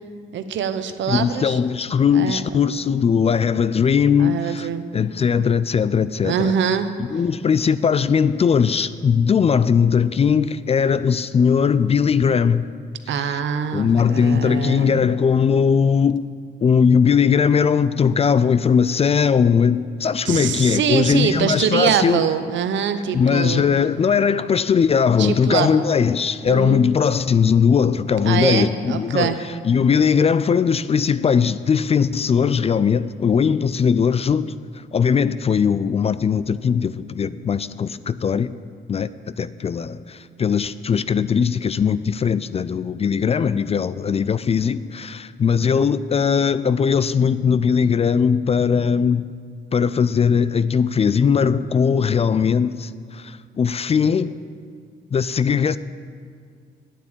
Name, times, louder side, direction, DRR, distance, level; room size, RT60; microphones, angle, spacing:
voice 1, 0.3-1.6 2.1-2.4 4.2-4.8 6.2-6.9 13.1-15.0 20.2-23.7 25.2-25.9 26.5-26.8 28.3-29.4, right 7 dB, 70° right, 0.8 m, -23 dB
voice 2, 1.1-4.7 4.9-6.5 7.1-12.7 13.2-13.4 13.7-16.3 16.6-22.2 23.1-29.3 29.6-34.5 34.9-38.5 38.9-49.3 49.7-54.3 55.1-55.8, left 6 dB, 30° left, 0.3 m, -19 dB
9.3 x 8.2 x 8.8 m
cardioid pair, 90°, 20 cm